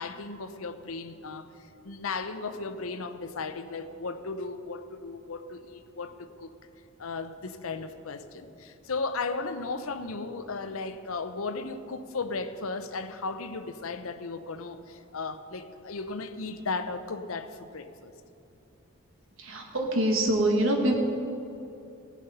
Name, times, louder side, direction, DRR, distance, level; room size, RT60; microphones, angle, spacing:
voice 1, 0.0-1.5 1.8-6.5 7.0-18.1, left 3 dB, 75° left, 10 dB, 0.7 m, -35 dB
voice 2, 19.4-20.9, right 1 dB, 65° right, 1 dB, 1.4 m, -25 dB
17.5 x 7.4 x 5.5 m, 2.8 s
head